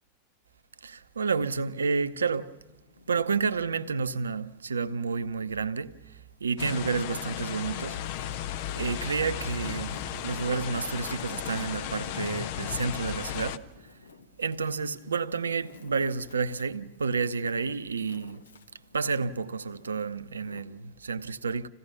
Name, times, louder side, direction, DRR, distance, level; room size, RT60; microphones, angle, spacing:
voice 1, 0.8-2.6 3.1-8.0 8.7-13.9 14.4-18.4 18.9-21.7, right 5 dB, 70° right, 0.8 m, -30 dB
Wind, 1.4-4.2 4.8-6.0 6.7-20.6, left 4 dB, 70° left, 1.4 m, -54 dB
sound 1, 6.6-13.6, left 11 dB, 50° left, 0.9 m, -35 dB
26.5 x 16.5 x 7.1 m
figure-of-eight pair, 90°, 0 cm